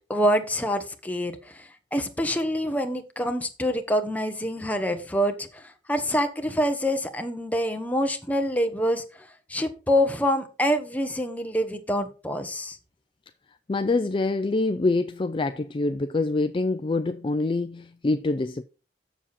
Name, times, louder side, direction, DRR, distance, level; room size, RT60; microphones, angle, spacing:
voice 1, 0.1-12.8, equal, 10° left, 1.0 m, -26 dB
voice 2, 13.7-18.6, left 3 dB, 30° left, 0.4 m, -25 dB
7.3 x 7.0 x 4.2 m
head